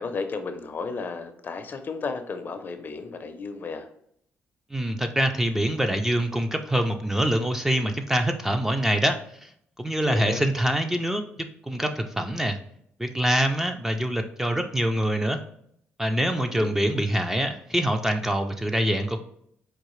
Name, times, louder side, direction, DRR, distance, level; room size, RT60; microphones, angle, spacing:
voice 1, 0.0-3.9 10.0-10.4 16.4-16.7, left 4 dB, 45° left, 7 dB, 0.5 m, -33 dB
voice 2, 4.7-9.5 9.8-11.2 11.6-12.6 13.0-15.4 16.0-19.2, right 1 dB, 10° right, 5 dB, 0.4 m, -25 dB
4.7 x 2.4 x 3.1 m, 0.69 s
cardioid pair, 90°, 5 cm